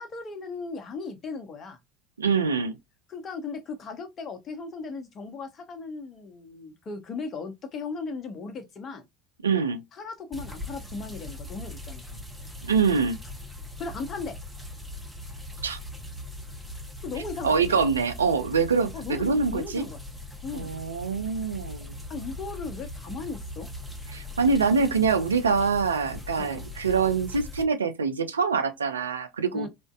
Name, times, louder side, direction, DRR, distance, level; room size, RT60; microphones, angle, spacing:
voice 1, 0.0-1.8 3.1-9.1 9.9-12.2 13.8-14.4 17.0-17.8 18.9-20.0 20.4-20.7 22.1-23.7 26.4-26.7 29.5-29.7, left 4 dB, 40° left, 0.9 m, -37 dB
voice 2, 2.2-2.7 9.4-9.8 12.7-13.2 15.6-15.8 17.4-19.8 20.5-22.0 24.1-29.7, right 5 dB, 85° right, 0.4 m, -25 dB
sound 1, 10.3-27.6, left 1 dB, ahead, 0.9 m, -40 dB
3.5 x 2.6 x 2.4 m
figure-of-eight pair, 70°, 0 cm